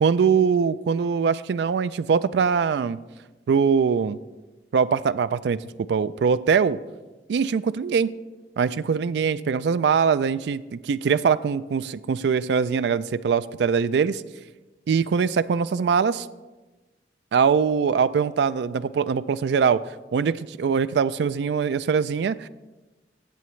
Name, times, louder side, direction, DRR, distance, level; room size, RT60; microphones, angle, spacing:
voice 1, 0.0-3.0 3.5-4.2 4.7-5.6 5.9-6.8 7.3-8.1 8.6-14.2 14.9-16.3 17.3-19.8 20.1-22.5, right 6 dB, 70° right, 16 dB, 0.3 m, -22 dB
14.0 x 7.7 x 3.2 m, 1.2 s
head